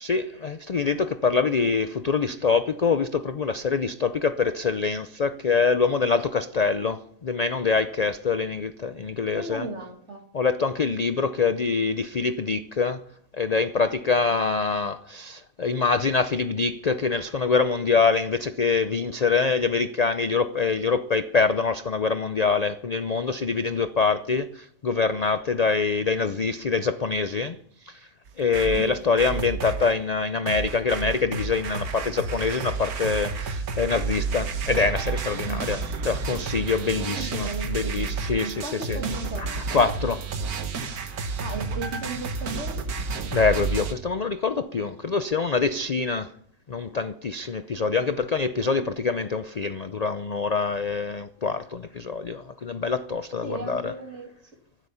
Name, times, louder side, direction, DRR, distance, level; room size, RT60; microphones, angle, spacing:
voice 1, 0.0-9.7 10.3-13.0 13.3-27.6 27.8-28.0 28.4-39.0 39.4-40.2 43.3-46.3 46.7-54.0, left 4 dB, 55° left, 11 dB, 0.4 m, -25 dB
voice 2, 9.3-10.2 28.7-29.0 35.5-35.7 37.1-38.1 38.4-39.6 41.4-42.8 48.7-48.9 53.4-54.4, right 3 dB, 50° right, 4 dB, 2.5 m, -35 dB
sound 1, 28.3-30.0 30.5-43.9, right 4 dB, 85° right, 1.7 m, -31 dB
24.0 x 8.2 x 5.6 m, 0.64 s
omnidirectional pair, 1.5 m